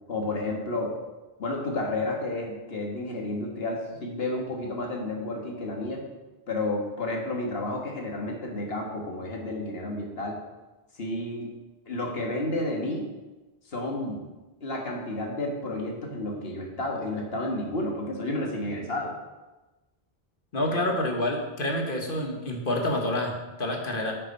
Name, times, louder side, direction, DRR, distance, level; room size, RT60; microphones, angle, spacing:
voice 1, 0.1-0.9 1.4-6.0 6.5-10.4 10.9-11.5 11.9-13.0 13.7-14.2 14.6-19.1, left 2 dB, 75° left, 0 dB, 1.7 m, -31 dB
voice 2, 20.5-24.1, left 1 dB, 60° left, 1 dB, 1.5 m, -28 dB
8.5 x 6.5 x 5.4 m, 1.1 s
omnidirectional pair, 1.0 m